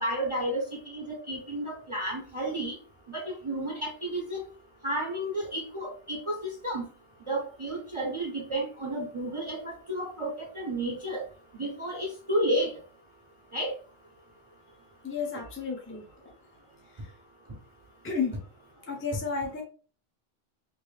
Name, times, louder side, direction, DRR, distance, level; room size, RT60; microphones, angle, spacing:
voice 1, 0.0-2.7 3.1-4.4 4.8-6.4 6.6-6.9 7.3-11.2 11.6-12.7 13.5-13.7, right 1 dB, 35° right, -2 dB, 0.7 m, -31 dB
voice 2, 15.0-16.1 16.8-17.2 18.0-18.4 18.8-19.6, left 5 dB, 15° left, -1 dB, 0.6 m, -32 dB
3.0 x 2.9 x 3.2 m, 0.40 s
omnidirectional pair, 1.1 m